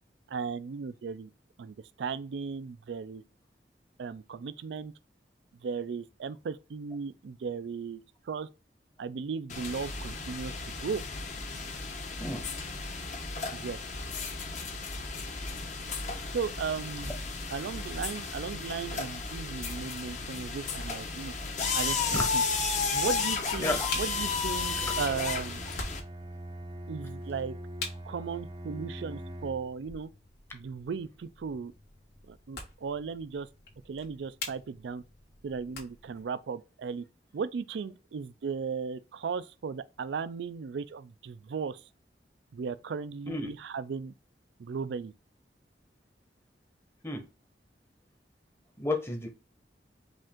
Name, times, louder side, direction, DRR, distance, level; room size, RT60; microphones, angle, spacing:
voice 1, 0.3-1.3 1.6-3.2 4.0-4.9 5.6-8.5 9.0-11.0 13.5-13.8 16.3-17.1 17.5-21.3 21.7-22.4 22.9-25.6 26.9-27.6 28.0-30.1 30.5-31.7 32.3-33.5 33.9-35.0 35.4-37.1 37.3-41.8 42.5-44.1 44.6-45.1, right 5 dB, 85° right, 0.4 m, -36 dB
sound 1, 9.5-26.0, left 4 dB, 45° left, 0.9 m, -33 dB
sound 2, 19.9-36.3, left 3 dB, 65° left, 1.7 m, -47 dB
Bowed string instrument, 24.1-29.8, right 1 dB, 25° right, 0.5 m, -43 dB
voice 2, 48.8-49.3, left 2 dB, 15° left, 0.9 m, -31 dB
5.1 x 2.5 x 3.6 m
head